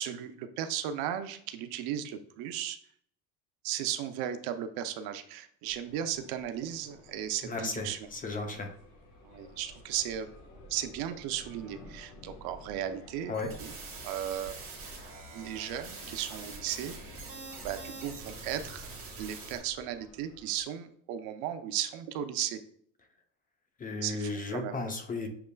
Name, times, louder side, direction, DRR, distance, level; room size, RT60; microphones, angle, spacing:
voice 1, 0.0-2.8 3.6-8.0 9.2-10.3 10.7-13.3 13.6-13.7 14.0-14.6 15.3-16.9 17.6-18.9 19.2-22.6 24.0-24.8, right 10 dB, 70° right, 9 dB, 0.6 m, -35 dB
sound 1, 5.6-20.6, left 2 dB, 55° left, 1.2 m, -53 dB
voice 2, 7.4-8.7 13.3-13.5 23.8-25.3, left 3 dB, 20° left, 4 dB, 0.5 m, -35 dB
sound 2, 13.3-19.6, right 4 dB, 35° right, 1.6 m, -45 dB
6.8 x 3.1 x 2.2 m, 0.63 s
cardioid pair, 145°, 38 cm